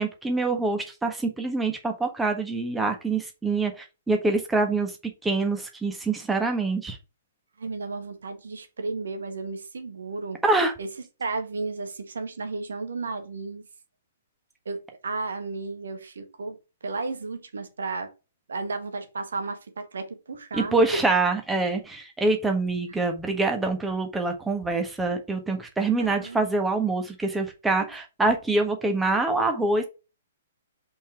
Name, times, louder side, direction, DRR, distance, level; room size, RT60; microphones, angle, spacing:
voice 1, 0.0-4.9 5.2-7.0 10.4-10.7 20.5-29.8, right 3 dB, 5° right, 1.5 m, -25 dB
voice 2, 7.6-10.4 10.8-10.9 11.2-13.6 14.6-16.6 16.8-18.1 18.5-20.8 25.1-25.2 26.0-26.4, right 3 dB, 70° right, 1.5 m, -33 dB
5.4 x 4.8 x 4.7 m
figure-of-eight pair, 120°, 0 cm